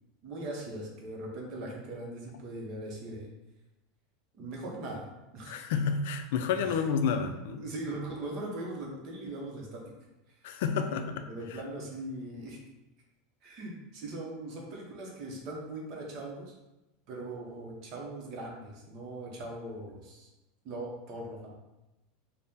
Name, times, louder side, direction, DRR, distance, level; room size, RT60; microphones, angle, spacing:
voice 1, 0.2-3.3 4.4-5.1 5.3-5.6 6.6-6.8 7.6-9.8 10.9-11.0 11.3-12.6 13.4-16.5 17.1-20.3 20.6-21.5, right 1 dB, 35° right, -1 dB, 0.7 m, -40 dB
voice 2, 5.4-7.6 10.4-11.3, left 6 dB, 60° left, 7 dB, 0.4 m, -30 dB
4.1 x 2.1 x 3.6 m, 0.98 s
supercardioid pair, 180°, 0 cm